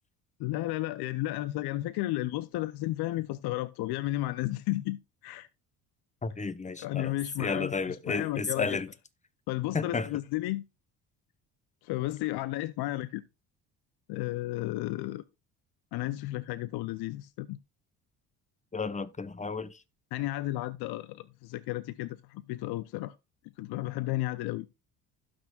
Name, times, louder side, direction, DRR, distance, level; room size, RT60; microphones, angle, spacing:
voice 1, 0.4-5.5 6.8-8.8 9.5-10.6 11.8-13.2 14.1-15.2 15.9-17.6 20.1-23.2 23.6-24.7, left 17 dB, 60° left, 0.6 m, -33 dB
voice 2, 6.2-7.1 7.4-8.9 9.7-10.1 18.7-19.7, left 4 dB, 15° left, 0.9 m, -32 dB
16.0 x 6.2 x 2.3 m
hypercardioid pair, 65°, 43 cm